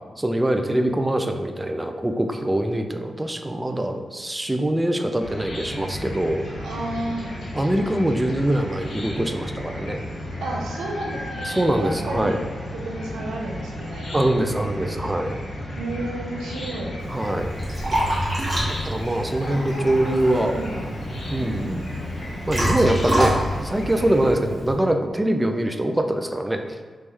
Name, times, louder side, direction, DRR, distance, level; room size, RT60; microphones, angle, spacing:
voice 1, 0.2-6.4 7.5-10.0 11.4-12.4 14.1-15.4 17.1-17.5 18.8-20.5 21.3-21.8 22.5-26.8, right 1 dB, 20° right, 5 dB, 0.4 m, -23 dB
Chicken rooster / Cricket, 5.2-24.3, left 1 dB, 75° left, 1.0 m, -33 dB
voice 2, 6.6-7.3 10.4-12.4 12.7-14.2 15.8-17.0 19.5-20.9 21.4-21.9, right 2 dB, 90° right, -1 dB, 0.5 m, -32 dB
Liquid, 17.0-24.7, equal, 40° right, 1.4 m, -27 dB
3.1 x 3.0 x 3.3 m, 1.5 s
supercardioid pair, 40°, 0 cm